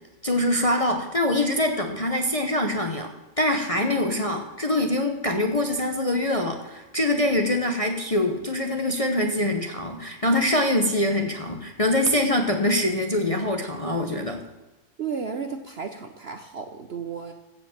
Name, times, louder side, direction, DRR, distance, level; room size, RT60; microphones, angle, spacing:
voice 1, 0.2-14.4, left 1 dB, 30° left, 4 dB, 0.7 m, -24 dB
voice 2, 3.9-4.4 15.0-17.3, right 6 dB, 55° right, 7 dB, 0.8 m, -34 dB
15.0 x 5.1 x 7.3 m, 1.1 s
omnidirectional pair, 1.7 m